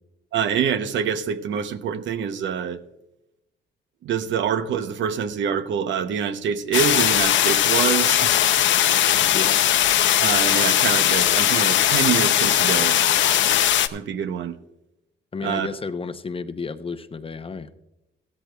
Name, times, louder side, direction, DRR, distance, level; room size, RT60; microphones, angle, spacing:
voice 1, 0.3-2.8 4.0-8.4 10.2-13.0 13.9-14.6 15.4-15.7, right 8 dB, 70° right, 0.8 m, -25 dB
sound 1, 6.7-13.9, left 11 dB, 70° left, 0.6 m, -19 dB
voice 2, 9.3-9.6 15.3-17.8, left 4 dB, 30° left, 0.7 m, -32 dB
15.5 x 13.0 x 2.3 m
cardioid pair, 90°, 20 cm